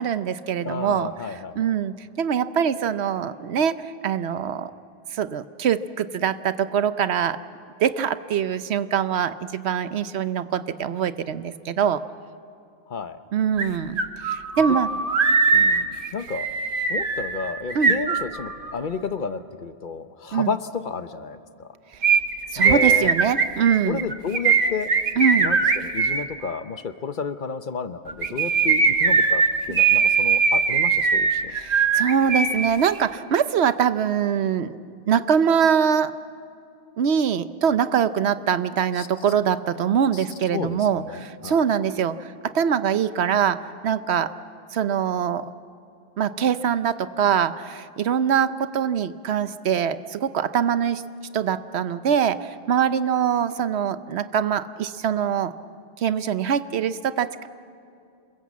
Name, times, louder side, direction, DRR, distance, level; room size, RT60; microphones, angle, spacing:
voice 1, 0.0-4.7 5.1-7.4 7.8-12.0 13.3-14.0 14.2-14.9 17.7-17.9 20.3-20.5 22.5-24.0 25.2-25.5 31.5-34.8 35.1-36.1 37.0-44.3 44.7-45.5 46.2-51.0 51.3-55.5 56.0-57.5, right 8 dB, 85° right, 13 dB, 1.0 m, -23 dB
voice 2, 0.6-1.7 12.9-13.2 14.7-14.8 15.5-16.5 16.9-21.7 22.6-23.1 23.9-24.9 25.4-31.6 39.0-39.1 40.1-40.2 40.5-41.6, left 5 dB, 50° left, 11 dB, 0.9 m, -31 dB
sound 1, 13.6-13.7 14.0-18.7 22.0-26.2 28.1-32.7 33.0-33.1, right 5 dB, 55° right, 1.4 m, -20 dB
27.5 x 21.5 x 7.4 m, 2.5 s
omnidirectional pair, 1.1 m